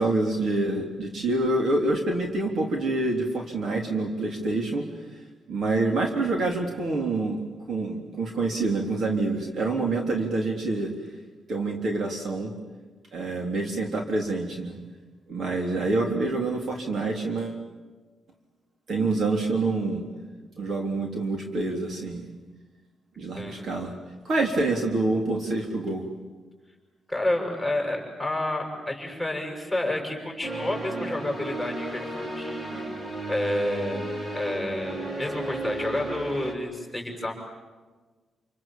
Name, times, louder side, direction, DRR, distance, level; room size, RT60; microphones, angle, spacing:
voice 1, 0.0-4.9 5.1-7.4 7.7-10.9 11.5-12.5 13.1-14.8 15.3-17.6 18.9-20.0 20.6-22.2 23.2-23.9 24.2-26.1, right 2 dB, 55° right, 2 dB, 3.6 m, -27 dB
voice 2, 27.1-32.8 33.3-34.0 34.3-37.3, left 1 dB, 5° right, 1 dB, 7.2 m, -30 dB
sound 1, 30.4-36.5, right 1 dB, 35° right, 3.9 m, -34 dB
28.0 x 28.0 x 7.5 m, 1.3 s
cardioid pair, 135°, 0 cm